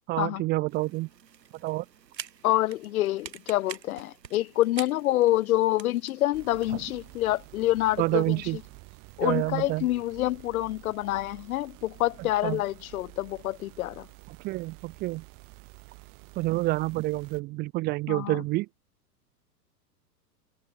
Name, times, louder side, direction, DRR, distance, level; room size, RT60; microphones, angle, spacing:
voice 1, 0.1-1.1 1.6-1.8 8.0-8.6 9.2-9.9 12.4-12.6 14.4-15.2 16.4-18.7, right 20 dB, 20° right, 0.5 m, -28 dB
sound 1, 0.7-8.8, right 8 dB, 85° right, 1.9 m, -47 dB
voice 2, 2.4-8.6 9.2-14.1 18.1-18.4, left 15 dB, 60° left, 0.7 m, -27 dB
sound 2, 6.3-17.4, right 28 dB, 40° right, 5.1 m, -50 dB
hypercardioid pair, 110°, 49 cm